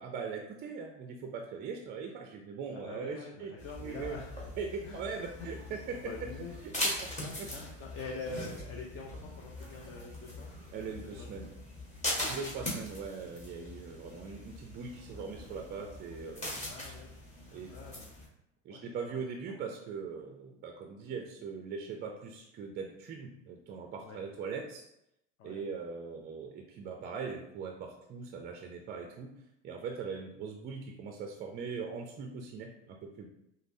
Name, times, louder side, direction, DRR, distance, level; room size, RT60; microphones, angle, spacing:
voice 1, 0.0-3.5 3.8-4.2 4.6-6.0 7.4-7.5 10.7-11.5 12.3-16.7 17.5-17.7 18.0-18.1 18.6-24.8 25.4-29.3 29.6-33.3, right 5 dB, 30° right, 2 dB, 0.4 m, -41 dB
voice 2, 2.7-4.4 4.8-5.5 6.0-6.5 6.9-10.5 11.1-11.5 12.1-12.7 16.6-17.2 17.5-18.1 18.7-19.2 19.5-19.6 24.0-24.2 25.4-25.6, left 4 dB, 35° left, -1 dB, 0.5 m, -45 dB
sound 1, 3.6-18.3, left 1 dB, 20° left, 1.3 m, -41 dB
5.1 x 2.0 x 2.6 m, 0.81 s
hypercardioid pair, 90°, 37 cm